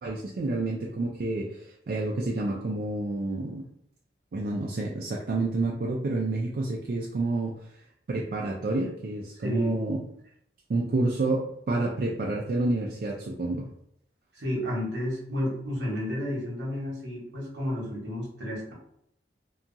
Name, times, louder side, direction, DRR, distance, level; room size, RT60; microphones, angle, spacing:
voice 1, 0.0-3.7 4.3-7.5 8.1-10.0 10.7-13.7, right 2 dB, 55° right, -2 dB, 0.3 m, -29 dB
voice 2, 9.4-9.8 14.4-18.7, left 1 dB, 80° right, -2 dB, 0.9 m, -31 dB
2.8 x 2.3 x 2.5 m, 0.73 s
head